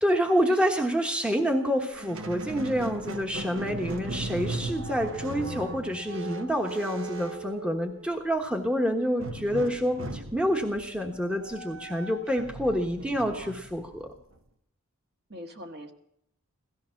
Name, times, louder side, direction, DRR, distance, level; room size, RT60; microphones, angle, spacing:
voice 1, 0.0-14.1, equal, 5° right, 3 dB, 1.2 m, -28 dB
Squeak, 1.9-8.3 9.2-14.4, right 2 dB, 65° right, 1.2 m, -38 dB
voice 2, 13.0-13.5 15.3-15.9, equal, 45° right, 3 dB, 1.7 m, -43 dB
17.0 x 14.5 x 5.8 m, 0.73 s
head